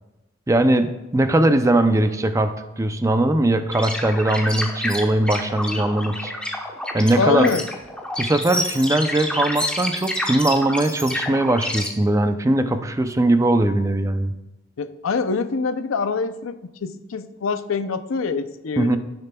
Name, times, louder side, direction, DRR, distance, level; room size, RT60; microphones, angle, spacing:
voice 1, 0.5-6.3 6.9-7.5 8.2-14.3 18.8-19.0, right 1 dB, 15° right, 9 dB, 0.4 m, -20 dB
sound 1, 3.7-11.9, left 1 dB, 5° left, 0.9 m, -28 dB
voice 2, 7.2-7.6 14.8-19.0, left 4 dB, 90° left, 11 dB, 0.5 m, -24 dB
16.0 x 6.7 x 2.3 m, 1.0 s
head